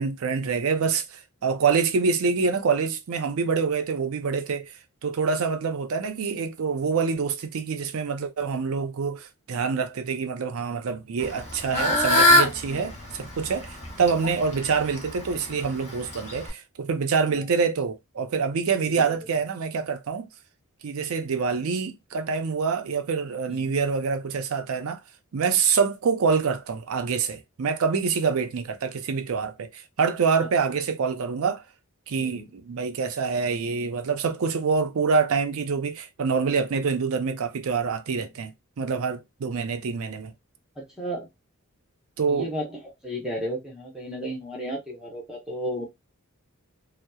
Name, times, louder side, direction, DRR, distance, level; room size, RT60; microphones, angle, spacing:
voice 1, 0.0-4.7 5.0-20.3 20.8-25.0 25.3-31.6 32.1-40.3 42.2-42.5, right 5 dB, 70° right, 0.5 m, -26 dB
Fowl / Bird, 11.2-16.5, left 1 dB, 30° left, 0.8 m, -24 dB
voice 2, 18.8-19.2 23.5-23.8 30.7-30.8 32.2-32.5 38.3-38.4 40.8-41.3 42.3-45.8, equal, 5° right, 0.7 m, -34 dB
2.8 x 2.0 x 2.2 m
head